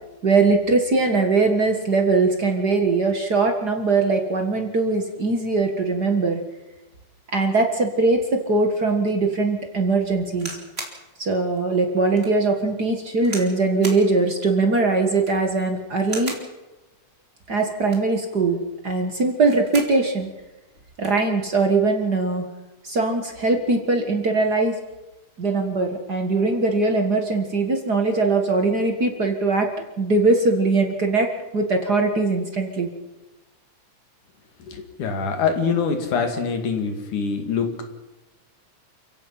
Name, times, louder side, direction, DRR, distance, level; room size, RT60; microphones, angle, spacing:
voice 1, 0.2-6.4 7.3-10.6 11.2-16.3 17.5-20.3 21.0-22.5 22.8-24.7 25.4-29.7 30.0-32.9, right 3 dB, 40° right, 4 dB, 1.9 m, -21 dB
sound 1, 10.4-11.0 11.6-11.7 12.2-12.3 13.2-13.5 13.8-14.1 15.1-15.5 16.0-16.5 17.7-18.2 19.3-20.0 20.4-20.5 20.7-21.2 22.1-22.3, right 2 dB, 20° right, 3.3 m, -36 dB
voice 2, 34.7-37.8, left 5 dB, 85° left, 5 dB, 3.9 m, -24 dB
29.5 x 16.0 x 5.8 m, 1.0 s
omnidirectional pair, 3.5 m